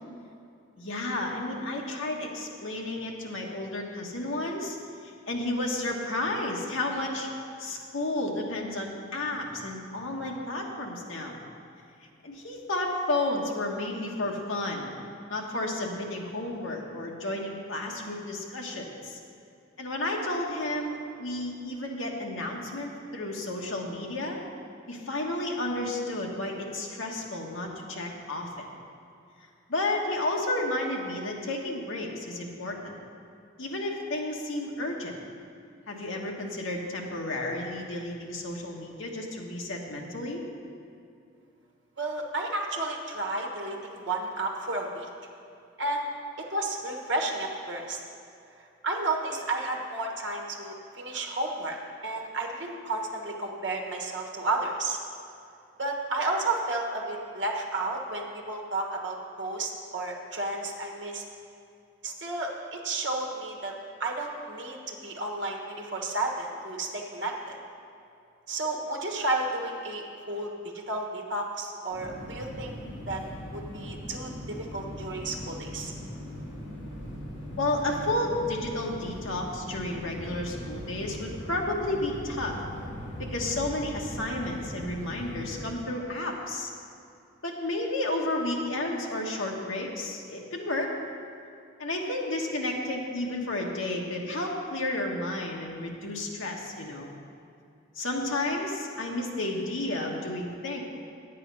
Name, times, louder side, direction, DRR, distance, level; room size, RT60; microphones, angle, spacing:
voice 1, 0.8-4.8 5.0-7.3 7.6-11.4 12.2-14.9 15.3-19.2 19.8-24.4 24.9-28.7 29.7-32.9 33.6-35.1 35.9-40.4 77.6-82.6 83.3-86.7 87.4-90.9 91.8-97.1 97.9-100.8, left 2 dB, 85° left, 0 dB, 1.4 m, -32 dB
voice 2, 42.0-45.1 45.8-46.0 46.4-48.0 48.8-51.8 52.0-55.0 55.8-61.2 62.0-63.7 64.0-67.6 68.5-70.5 70.7-72.7 73.1-73.2 73.5-75.9, right 2 dB, 65° right, 1 dB, 1.3 m, -32 dB
sound 1, 71.9-85.7, equal, 65° left, 2.0 m, -40 dB
9.4 x 8.4 x 5.4 m, 2.5 s
head